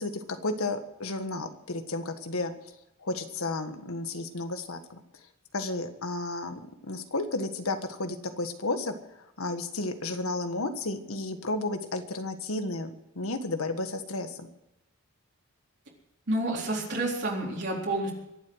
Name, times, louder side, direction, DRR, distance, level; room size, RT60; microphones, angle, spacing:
voice 1, 0.0-2.5 3.0-5.0 5.5-8.9 9.4-14.5, left 2 dB, 85° left, 7 dB, 1.6 m, -32 dB
voice 2, 16.3-18.1, right 1 dB, 55° right, -3 dB, 4.0 m, -29 dB
23.5 x 8.1 x 6.4 m, 0.90 s
head